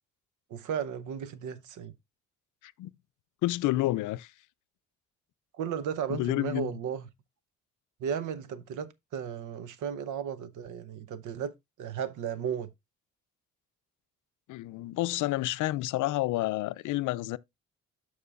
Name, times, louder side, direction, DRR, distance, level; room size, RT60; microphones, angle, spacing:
voice 1, 0.5-1.9 5.6-7.0 8.0-11.5 11.8-12.7, right 8 dB, 80° right, 0.9 m, -35 dB
voice 2, 3.4-4.3 6.1-6.7 14.5-17.4, left 17 dB, 80° left, 0.5 m, -29 dB
12.5 x 4.8 x 2.4 m
cardioid pair, 90°, 30 cm